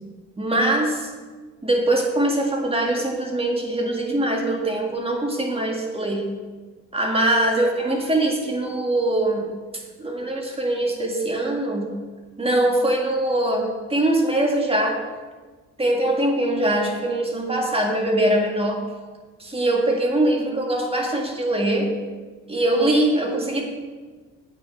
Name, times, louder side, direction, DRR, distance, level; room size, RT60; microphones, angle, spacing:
voice 1, 0.4-1.1 1.6-6.3 6.9-9.5 9.7-11.9 12.4-15.0 15.8-18.8 19.4-21.9 22.5-23.6, right 1 dB, 20° right, 1 dB, 2.0 m, -22 dB
8.7 x 7.5 x 5.6 m, 1.4 s
cardioid pair, 90°, 30 cm